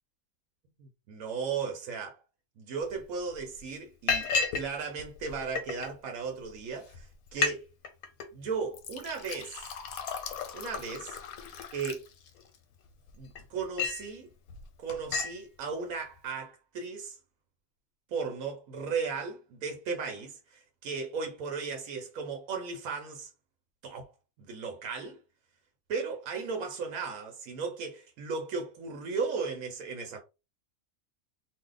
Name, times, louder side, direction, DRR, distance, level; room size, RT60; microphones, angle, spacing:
voice 1, 0.8-2.2 2.6-7.7 8.3-9.7 10.5-11.2 11.7-12.0 13.2-14.3 14.8-17.2 18.1-23.3 23.8-24.1 24.4-25.2 25.9-30.2, right 5 dB, 85° right, 1.2 m, -36 dB
Liquid, 2.9-3.0 3.3-3.6 4.1-4.7 5.0-5.9 6.5-6.6 6.9-7.0 7.3-7.6 7.8-8.3 8.7-12.6 13.1-14.1 14.5-14.6 14.9-15.4, left 5 dB, 90° left, 1.1 m, -33 dB
2.7 x 2.0 x 3.8 m
omnidirectional pair, 1.4 m